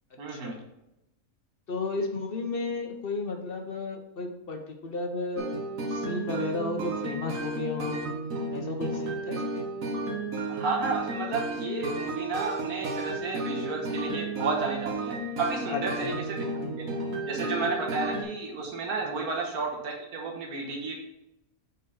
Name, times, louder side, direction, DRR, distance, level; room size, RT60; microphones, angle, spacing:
voice 1, 0.2-0.6 10.5-16.9 17.3-21.0, right 4 dB, 85° right, -1 dB, 1.7 m, -32 dB
voice 2, 1.7-5.4 5.9-8.1 8.5-9.6 15.7-16.2 19.1-19.3, left 3 dB, 45° left, 4 dB, 0.9 m, -33 dB
sound 1, 5.4-18.2, right 2 dB, 65° right, 1.5 m, -33 dB
7.2 x 4.1 x 5.6 m, 0.88 s
omnidirectional pair, 1.5 m